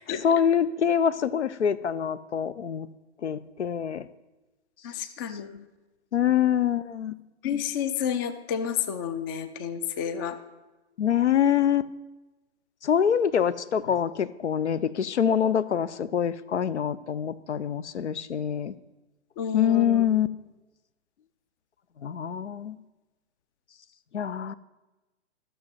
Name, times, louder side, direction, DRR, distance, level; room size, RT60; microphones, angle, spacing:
voice 1, 0.2-2.9 3.2-4.1 6.1-7.2 11.0-11.9 12.8-18.8 19.5-20.3 22.0-22.8 24.1-24.5, left 8 dB, 75° left, 17 dB, 0.7 m, -25 dB
voice 2, 4.8-5.6 7.4-10.4 19.4-20.1, left 8 dB, 20° left, 10 dB, 0.4 m, -30 dB
12.5 x 6.5 x 7.6 m, 1.1 s
figure-of-eight pair, 125°, 35 cm